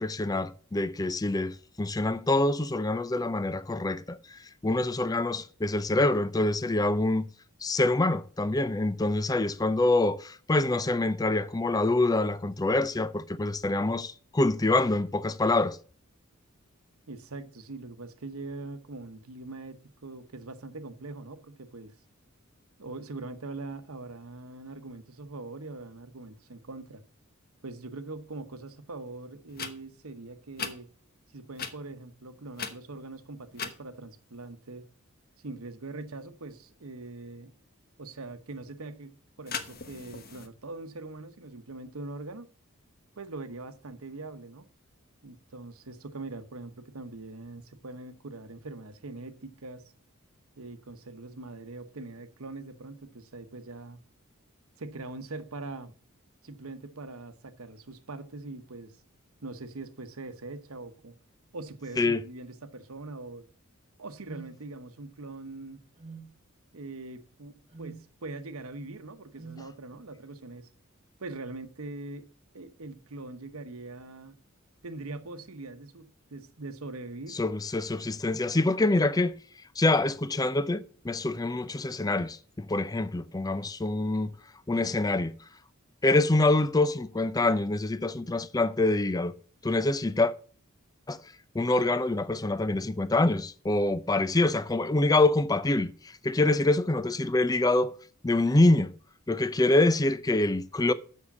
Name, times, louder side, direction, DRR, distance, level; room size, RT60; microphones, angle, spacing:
voice 1, 0.0-7.3 7.6-15.8 62.0-62.2 77.3-79.4 79.8-84.3 84.7-85.3 86.0-89.3 89.6-90.3 91.1-91.2 91.5-97.9 98.2-98.9 99.3-100.9, left 2 dB, 20° left, 0.5 m, -25 dB
voice 2, 17.1-21.9 22.8-27.0 27.6-30.9 31.3-34.9 35.4-37.5 38.0-42.5 43.2-44.7 45.2-49.9 50.6-54.0 54.8-55.9 56.4-59.0 59.4-61.1 61.5-63.5 64.0-65.8 66.7-70.7 71.2-74.3 74.8-77.4, right 3 dB, 90° right, 1.0 m, -42 dB
sound 1, 29.5-29.7 30.6-30.7 31.5-31.7 32.5-33.1 33.5-33.8 39.5-40.5, left 6 dB, 45° left, 1.0 m, -37 dB
sound 2, 64.2-64.5 66.0-66.3 67.7-68.0 69.4-69.7, right 5 dB, 30° right, 1.3 m, -44 dB
7.4 x 6.5 x 7.0 m
head